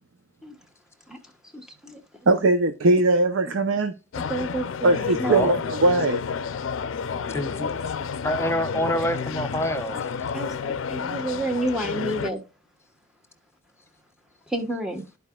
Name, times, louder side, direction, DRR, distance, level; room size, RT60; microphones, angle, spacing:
voice 1, 1.6-2.0 4.3-5.4 10.3-12.4 14.5-15.1, right 1 dB, 5° right, 1.2 m, -29 dB
voice 2, 2.3-3.9 4.8-6.2, right 2 dB, 90° right, 0.7 m, -20 dB
sound 1, 4.1-12.3, left 6 dB, 80° left, 0.5 m, -30 dB
voice 3, 5.2-5.6 7.3-7.7 8.2-10.3, equal, 15° left, 0.8 m, -27 dB
12.5 x 4.8 x 2.3 m
head